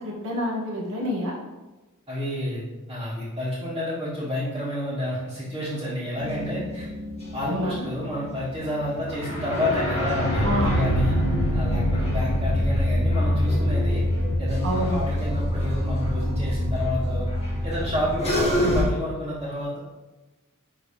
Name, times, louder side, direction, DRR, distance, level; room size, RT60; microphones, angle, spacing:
voice 1, 0.0-1.3 7.5-7.8 10.4-10.8 14.6-15.0, equal, 65° right, -2 dB, 1.7 m, -27 dB
voice 2, 2.1-2.6 2.9-6.9 7.3-11.2 11.5-14.0 14.4-17.3 17.6-19.8, left 1 dB, 25° right, -13 dB, 2.1 m, -29 dB
sound 1, 6.2-18.8, equal, 30° left, 2.0 m, -25 dB
11.0 x 3.7 x 3.3 m, 1.1 s
head